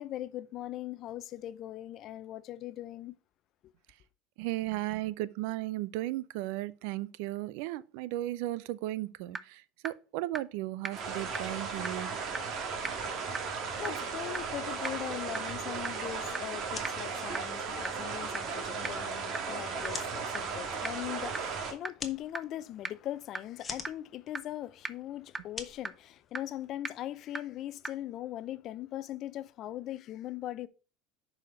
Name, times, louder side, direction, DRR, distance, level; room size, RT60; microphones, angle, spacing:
voice 1, 0.0-3.1 13.4-30.7, left 13 dB, 50° left, 0.5 m, -40 dB
voice 2, 4.4-12.1, right 16 dB, 70° right, 0.4 m, -35 dB
sound 1, 8.9-9.0 9.3-9.4 9.8-9.9 10.3-10.4 10.8-10.9 11.3-11.4 11.8-11.9 12.3-12.4 12.8-12.9 13.3-13.4 13.8-13.9 14.3-14.4 14.8-14.9 15.3-15.4 15.8-15.9 16.3-16.4 16.8-16.9 17.3-17.4 17.8-17.9 18.3-18.4 18.8-18.9 19.3-19.4 19.8-19.9 20.3-20.4 20.8-20.9 21.3-21.4 21.8-21.9 22.3-22.4 22.8-22.9 23.3-23.4 23.8-23.9 24.3-24.4 24.8-24.9 25.3-25.4 25.8-25.9 26.3-26.4 26.8-26.9 27.3-27.4 27.8-27.9, right 3 dB, 15° right, 0.6 m, -34 dB
sound 2, 10.9-21.7, right 5 dB, 50° right, 1.9 m, -36 dB
sound 3, 19.8-26.7, left 4 dB, 25° left, 1.2 m, -48 dB
6.6 x 4.9 x 5.1 m
hypercardioid pair, 85°, 0 cm